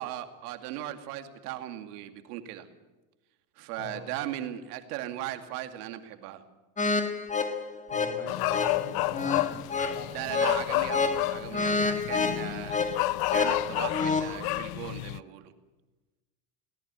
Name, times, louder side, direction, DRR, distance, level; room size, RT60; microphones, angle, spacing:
voice 1, 0.0-2.7 3.6-6.4 10.1-15.5, right 13 dB, 85° right, 8 dB, 2.5 m, -38 dB
sound 1, 6.8-14.4, left 4 dB, 15° left, 2.1 m, -29 dB
voice 2, 7.9-11.0, left 5 dB, 75° left, 8 dB, 6.2 m, -43 dB
sound 2, 8.3-15.2, left 19 dB, 55° left, 0.8 m, -31 dB
21.5 x 18.5 x 9.7 m, 1.1 s
supercardioid pair, 120°, 45 cm